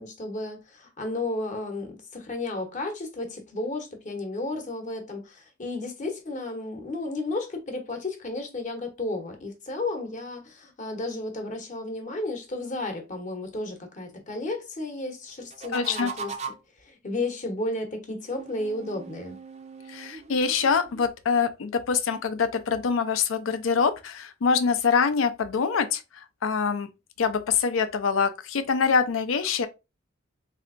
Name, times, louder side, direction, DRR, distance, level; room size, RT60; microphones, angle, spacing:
voice 1, 0.0-16.3 16.8-19.4, left 2 dB, 40° left, 0.8 m, -33 dB
sound 1, 15.4-16.8 18.2-21.1, right 5 dB, 35° right, 0.4 m, -40 dB
voice 2, 15.7-16.1 19.9-26.9 27.2-29.7, left 5 dB, 85° left, 0.4 m, -25 dB
3.3 x 2.8 x 2.4 m
head